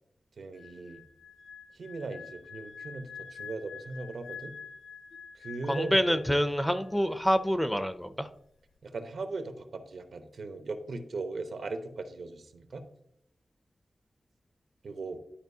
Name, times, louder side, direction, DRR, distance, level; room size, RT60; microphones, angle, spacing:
voice 1, 0.4-1.0 1.7-4.5 5.3-6.4 8.8-12.8 14.8-15.2, right 3 dB, 80° right, 7 dB, 0.8 m, -38 dB
sound 1, 0.5-6.9 7.2-7.5, left 6 dB, 85° left, 0.5 m, -46 dB
voice 2, 5.7-8.3, equal, 5° left, 11 dB, 0.4 m, -27 dB
11.5 x 4.8 x 2.7 m, 0.73 s
wide cardioid pair, 150°, 0 cm